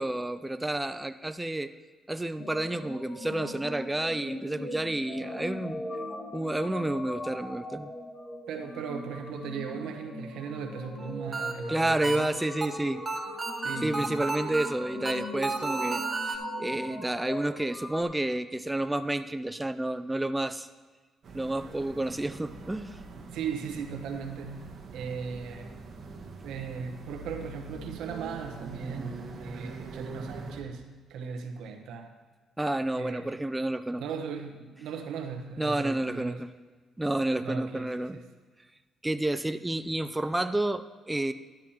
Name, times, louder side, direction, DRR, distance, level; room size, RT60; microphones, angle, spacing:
voice 1, 0.0-1.7 2.1-5.8 6.3-7.9 11.7-13.0 13.8-20.7 21.3-23.0 32.6-34.0 35.6-36.5 37.0-38.2 39.0-41.3, right 1 dB, 10° right, 10 dB, 0.4 m, -30 dB
sound 1, 2.4-18.0, left 1 dB, 50° left, 1.8 m, -40 dB
voice 2, 8.5-12.3 13.6-14.2 23.1-25.7 26.4-32.1 32.9-33.4 34.0-36.4 37.4-38.3, right 6 dB, 85° right, 4 dB, 1.0 m, -38 dB
sound 2, 11.0-16.4, right 3 dB, 25° right, 1.4 m, -33 dB
sound 3, 21.2-30.6, right 3 dB, 55° right, 1.3 m, -43 dB
13.0 x 10.5 x 2.9 m, 1.4 s
cardioid pair, 90°, 0 cm